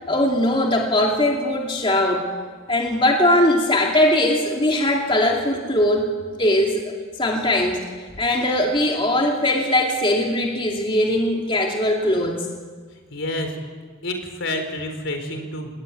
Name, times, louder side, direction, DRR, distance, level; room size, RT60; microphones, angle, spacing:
voice 1, 0.1-2.2 2.7-6.1 6.4-6.8 7.2-7.8 8.2-12.5, left 1 dB, 25° left, 0 dB, 2.7 m, -20 dB
voice 2, 13.1-13.5 14.0-15.7, left 1 dB, 60° left, 6 dB, 4.1 m, -28 dB
27.5 x 20.0 x 9.5 m, 1.5 s
head